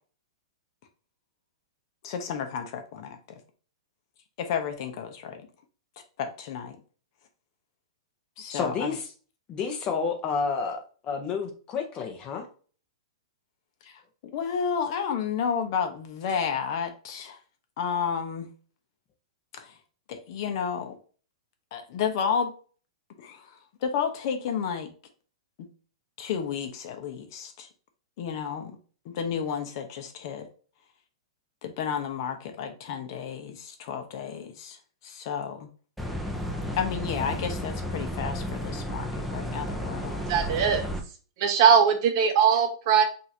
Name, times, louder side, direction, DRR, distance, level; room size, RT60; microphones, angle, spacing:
voice 1, 2.0-3.2 4.4-5.5 6.2-6.8 8.4-9.0 13.9-14.0 14.3-17.4 17.8-18.5 19.5-19.7 20.1-21.0 21.7-22.5 23.2-23.5 23.8-24.9 25.6-25.7 26.2-27.7 28.2-28.7 29.0-30.5 31.6-34.8 35.0-35.7 36.8-40.4, left 7 dB, 50° left, 6 dB, 0.9 m, -31 dB
voice 2, 8.5-9.1 9.5-12.5, left 5 dB, 30° left, 4 dB, 1.0 m, -30 dB
sound 1, 36.0-41.0, equal, ahead, 0.6 m, -32 dB
voice 3, 40.3-40.8 41.4-43.0, right 7 dB, 50° right, 6 dB, 1.0 m, -20 dB
5.5 x 2.7 x 2.9 m, 0.39 s
hypercardioid pair, 140°, 3 cm